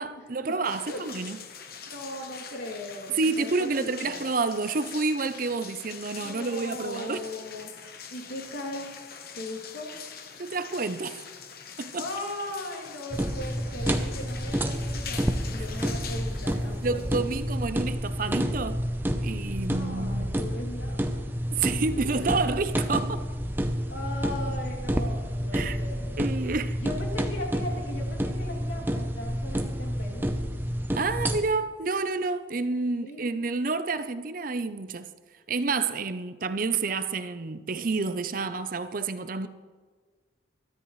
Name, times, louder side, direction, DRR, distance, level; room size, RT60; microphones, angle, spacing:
voice 1, 0.0-1.4 3.1-7.2 10.4-11.2 11.8-12.1 16.8-18.8 19.2-20.3 21.5-23.2 25.5-25.8 26.2-26.8 30.9-35.1 35.5-39.5, right 3 dB, 45° right, 0.6 m, -29 dB
sound 1, 0.6-17.9, left 6 dB, 50° left, 1.1 m, -43 dB
voice 2, 1.8-4.2 6.2-7.7 8.1-8.9 9.4-9.9 11.9-17.0 19.7-21.2 22.0-22.3 23.9-26.2 26.8-30.3 32.9-33.2, left 1 dB, 75° left, 2.7 m, -38 dB
sound 2, 13.1-31.4, equal, 10° right, 0.7 m, -29 dB
22.0 x 13.0 x 3.2 m
head